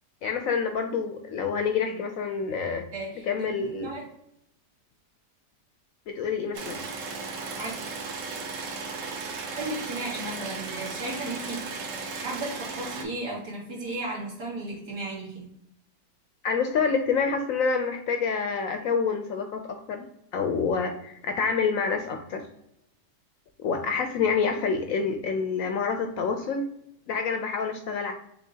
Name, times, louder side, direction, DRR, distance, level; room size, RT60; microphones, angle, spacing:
voice 1, 0.2-2.8 3.2-3.9 6.1-6.9 16.4-22.4 23.6-26.7 27.1-28.1, left 5 dB, 70° left, 6 dB, 0.8 m, -27 dB
voice 2, 2.9-4.1 7.6-7.7 9.6-15.5, right 2 dB, 80° right, -5 dB, 2.5 m, -35 dB
sound 1, 6.5-13.0, right 4 dB, 55° right, 1.0 m, -36 dB
6.6 x 2.9 x 2.7 m, 0.77 s
omnidirectional pair, 1.8 m